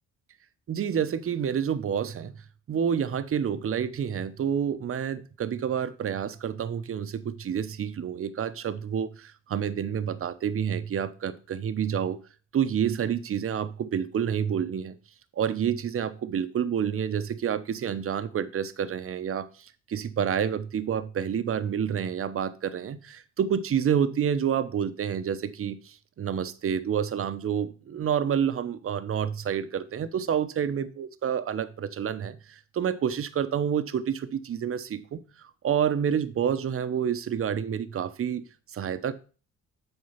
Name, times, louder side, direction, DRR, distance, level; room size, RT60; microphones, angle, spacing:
voice 1, 0.7-2.3 2.7-12.2 12.5-15.0 15.4-38.4 38.7-39.1, right 8 dB, 45° right, 12 dB, 0.9 m, -28 dB
7.9 x 4.7 x 5.6 m, 0.36 s
cardioid pair, 90°, 30 cm